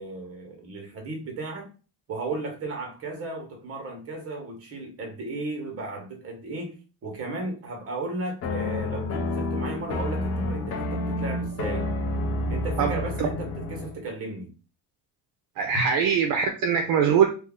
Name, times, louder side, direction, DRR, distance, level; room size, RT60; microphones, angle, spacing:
voice 1, 0.0-1.7 2.1-11.9 12.5-14.5 15.7-15.9, right 2 dB, 35° right, 1.2 m, -35 dB
sound 1, 8.4-14.0, left 2 dB, 40° left, 0.7 m, -29 dB
voice 2, 15.6-17.3, right 7 dB, 60° right, 0.6 m, -22 dB
2.8 x 2.4 x 3.6 m
cardioid pair, 145°, 39 cm